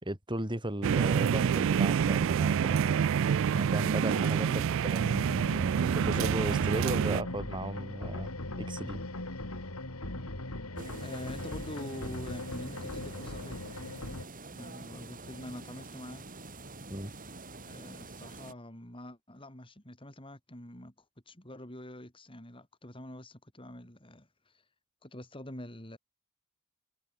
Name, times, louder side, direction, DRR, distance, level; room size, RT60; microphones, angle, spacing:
voice 1, 0.0-3.0 3.5-5.1 5.9-8.3 8.6-9.0 16.9-17.1, right 1 dB, 20° right, 4.8 m, -35 dB
sound 1, 0.8-7.2, right 7 dB, 60° right, 0.3 m, -27 dB
sound 2, 5.0-14.2, left 1 dB, 85° left, 4.1 m, -39 dB
sound 3, 10.8-18.5, right 3 dB, 40° right, 7.6 m, -46 dB
voice 2, 10.9-13.7 14.5-16.3 17.6-24.6 25.0-26.0, left 1 dB, 25° left, 5.3 m, -45 dB
head